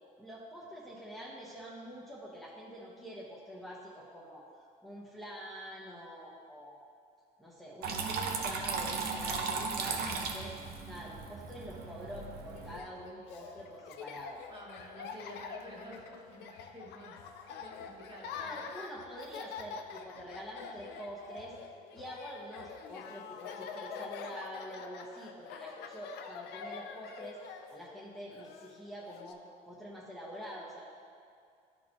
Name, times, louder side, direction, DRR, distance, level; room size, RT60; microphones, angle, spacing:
voice 1, 0.2-4.4 4.8-6.8 7.4-10.5 10.8-14.4 18.3-21.6 21.9-29.4 29.7-30.8, equal, ahead, -7 dB, 1.0 m, -46 dB
Water tap faucet / Trickle dribble, 7.8-12.8, right 4 dB, 70° right, 0.8 m, -36 dB
voice 2, 8.3-8.6 14.5-18.7, equal, 30° right, -3 dB, 1.8 m, -50 dB
Laughter, 12.6-29.3, left 6 dB, 80° left, 0.5 m, -46 dB
12.0 x 4.3 x 2.9 m, 2.3 s
cardioid pair, 110°, 17 cm